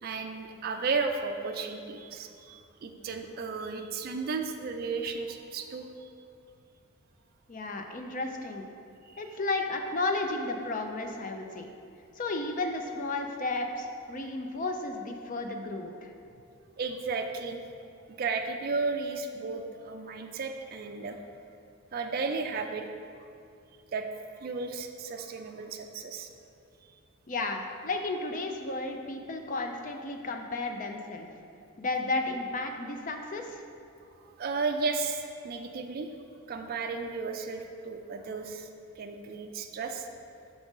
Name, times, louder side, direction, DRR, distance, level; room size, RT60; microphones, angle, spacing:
voice 1, 0.0-6.1 9.0-9.2 16.8-17.6 18.2-21.2 21.9-22.8 23.9-24.1 24.4-26.3 34.4-36.1 36.5-38.7 39.0-40.1, right 4 dB, 45° right, 4 dB, 0.3 m, -34 dB
voice 2, 7.5-8.7 9.2-11.7 12.2-16.1 27.3-31.3 31.8-33.6, left 2 dB, 35° left, 4 dB, 0.5 m, -33 dB
6.2 x 3.7 x 5.3 m, 2.5 s
head